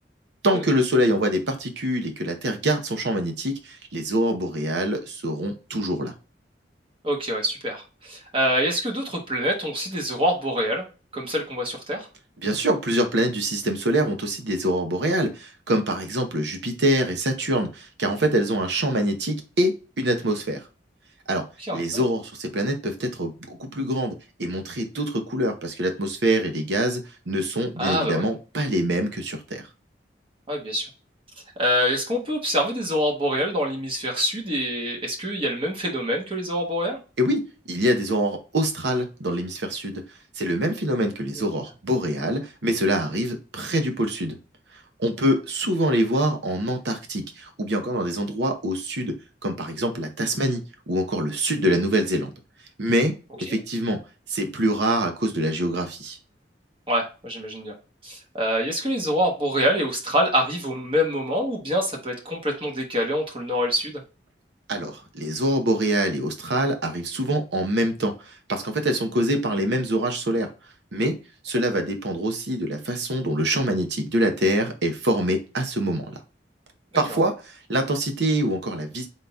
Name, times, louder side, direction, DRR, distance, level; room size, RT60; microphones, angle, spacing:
voice 1, 0.4-6.1 12.4-20.6 21.3-21.4 21.7-29.6 37.2-40.0 40.4-44.4 44.7-49.1 49.4-52.3 52.8-54.0 54.3-56.2 64.7-70.5 70.9-71.2 71.4-76.2 76.9-79.1, right 1 dB, 70° right, 5 dB, 0.8 m, -25 dB
voice 2, 7.0-10.9 11.1-12.1 21.6-22.0 27.8-28.2 30.5-30.8 31.6-37.0 53.5-53.6 56.9-57.7 58.0-64.0 77.1-77.2, equal, 30° right, 1 dB, 1.1 m, -25 dB
4.0 x 3.7 x 2.3 m, 0.32 s
head